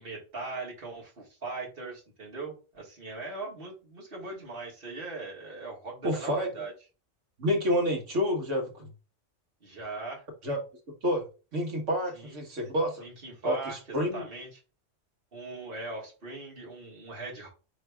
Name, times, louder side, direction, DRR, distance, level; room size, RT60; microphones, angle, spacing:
voice 1, 0.0-6.7 9.6-10.3 12.1-12.4 13.0-14.6 15.3-17.5, right 3 dB, 45° right, 1.5 m, -40 dB
voice 2, 6.0-6.5 7.4-8.9 10.4-10.6 11.0-11.3 11.5-13.1 13.4-14.2, equal, 70° right, 1.5 m, -28 dB
4.6 x 3.2 x 3.3 m
omnidirectional pair, 1.3 m